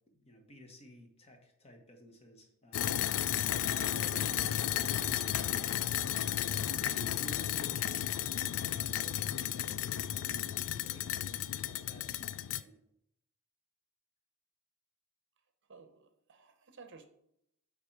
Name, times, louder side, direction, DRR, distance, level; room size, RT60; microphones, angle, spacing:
voice 1, 0.0-3.0 3.6-5.8 6.6-11.3 11.6-12.8, equal, 30° left, 3 dB, 1.1 m, -54 dB
sound 1, 2.7-12.6, left 11 dB, 65° left, 0.3 m, -33 dB
voice 2, 15.7-17.1, right 4 dB, 55° right, 9 dB, 0.7 m, -55 dB
8.3 x 3.7 x 4.5 m, 0.77 s
head